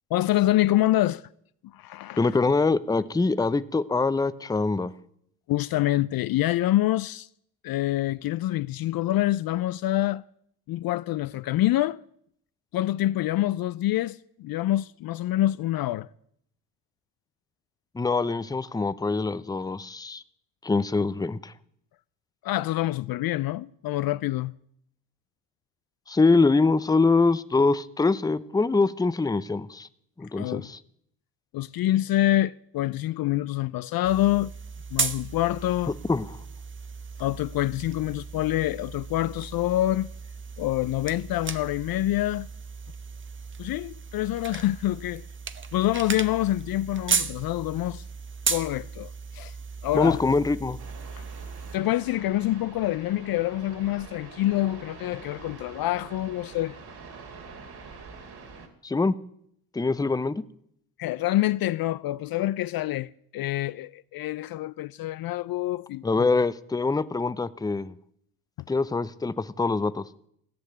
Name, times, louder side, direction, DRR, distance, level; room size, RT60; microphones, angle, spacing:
voice 1, 0.1-1.2 1.7-2.3 5.5-7.3 7.6-10.2 10.7-12.0 12.7-16.1 22.4-24.5 30.4-30.7 31.5-34.5 34.9-35.9 37.2-40.1 40.6-42.5 43.6-45.2 45.7-48.0 48.5-49.5 49.8-50.2 51.2-51.3 51.7-56.8 61.0-66.3, left 15 dB, 55° left, 0.5 m, -26 dB
voice 2, 2.2-4.9 17.9-20.2 20.6-21.5 26.1-29.9 30.2-30.8 36.1-36.3 49.9-50.8 58.8-59.1 59.7-60.4 66.0-67.9 68.7-70.1, left 3 dB, 10° left, 0.6 m, -24 dB
sound 1, 34.0-51.8, right 5 dB, 25° right, 1.0 m, -35 dB
sound 2, 50.8-58.7, right 4 dB, 60° right, 2.6 m, -45 dB
15.0 x 6.5 x 9.1 m
supercardioid pair, 65°, 43 cm